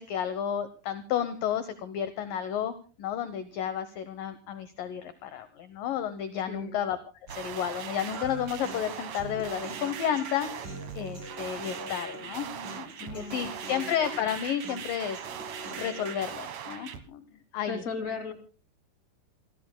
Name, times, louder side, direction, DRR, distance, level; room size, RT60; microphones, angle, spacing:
voice 1, 0.0-7.0 7.4-12.5 12.7-15.3 15.7-17.2 17.5-17.8, left 9 dB, 75° left, 11 dB, 2.1 m, -32 dB
sound 1, 7.3-17.0, right 8 dB, 65° right, 1.8 m, -40 dB
Human voice, 8.1-16.1, equal, 25° right, 4.4 m, -44 dB
voice 2, 13.0-13.9 17.6-18.3, left 4 dB, 25° left, 6 dB, 2.1 m, -37 dB
28.5 x 18.0 x 2.2 m, 0.37 s
omnidirectional pair, 5.2 m